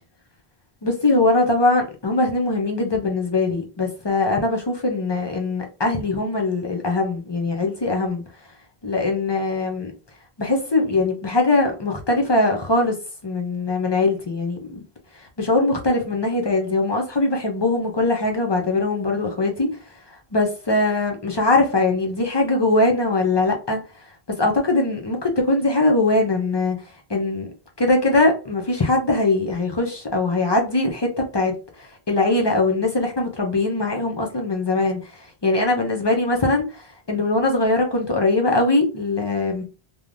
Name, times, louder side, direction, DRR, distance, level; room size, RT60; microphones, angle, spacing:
voice 1, 0.8-8.2 8.8-9.9 10.4-13.0 13.2-14.8 15.2-19.7 20.3-23.8 24.3-26.8 27.1-27.5 27.8-39.6, left 2 dB, 35° left, 0.4 m, -21 dB
3.2 x 2.1 x 2.4 m
omnidirectional pair, 1.1 m